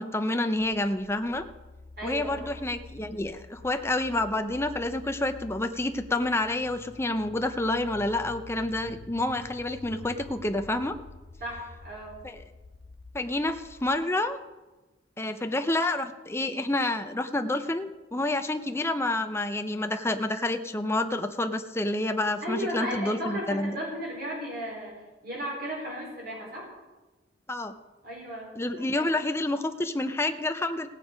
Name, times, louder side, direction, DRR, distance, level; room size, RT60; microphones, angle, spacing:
voice 1, 0.0-1.4 2.0-11.0 12.2-12.4 13.1-14.4 15.2-23.8 27.5-27.7 28.6-30.9, left 2 dB, 15° left, 7 dB, 0.7 m, -28 dB
sound 1, 0.6-14.0, left 3 dB, 60° left, 0.6 m, -48 dB
voice 2, 2.0-2.5 11.4-12.2 22.4-24.9 25.2-26.7 28.0-28.5 28.9-29.1, equal, 55° right, -4 dB, 4.4 m, -35 dB
17.5 x 8.4 x 5.2 m, 1.1 s
head